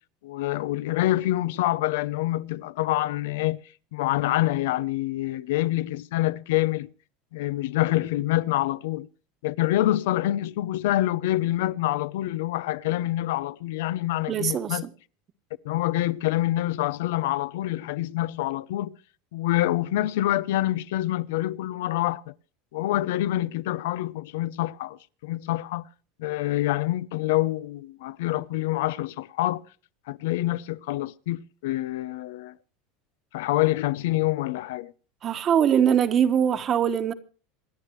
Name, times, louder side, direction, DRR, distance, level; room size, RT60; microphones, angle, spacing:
voice 1, 0.2-3.6 3.9-6.9 7.3-9.1 9.4-14.9 15.6-19.0 19.3-22.3 22.7-25.8 26.2-29.6 30.1-32.5 33.3-34.9, left 15 dB, 80° left, 0.7 m, -26 dB
voice 2, 14.3-14.9 35.2-37.1, right 8 dB, 30° right, 1.2 m, -22 dB
27.5 x 10.5 x 3.2 m
supercardioid pair, 160°, 0 cm